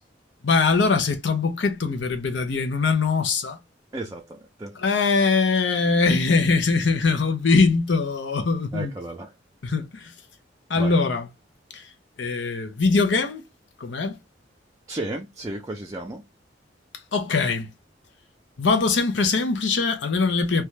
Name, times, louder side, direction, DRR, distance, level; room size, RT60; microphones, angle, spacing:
voice 1, 0.4-3.6 4.8-8.9 9.6-10.1 10.7-11.3 11.7-11.9 12.2-13.4 13.8-14.2 17.1-17.7 18.6-20.6, left 4 dB, 70° left, 0.7 m, -22 dB
voice 2, 3.9-4.8 8.7-9.3 10.8-10.9 14.9-16.2, right 2 dB, 20° right, 0.4 m, -33 dB
3.4 x 2.2 x 2.7 m
head